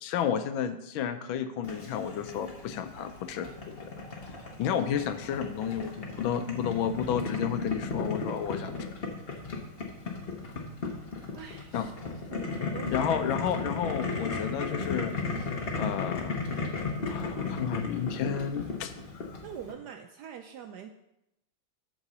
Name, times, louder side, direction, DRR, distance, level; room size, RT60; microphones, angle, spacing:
voice 1, 0.0-3.8 4.6-8.9 11.7-11.9 12.9-15.2 15.8-16.4 17.1-18.9 19.3-19.4, left 8 dB, 80° left, 9 dB, 1.4 m, -31 dB
Boiling, 1.6-19.7, left 4 dB, 35° left, 1.1 m, -35 dB
voice 2, 11.3-11.9 12.3-13.1 19.4-20.9, right 8 dB, 75° right, 5 dB, 1.0 m, -44 dB
8.1 x 4.0 x 6.7 m, 0.85 s
omnidirectional pair, 2.2 m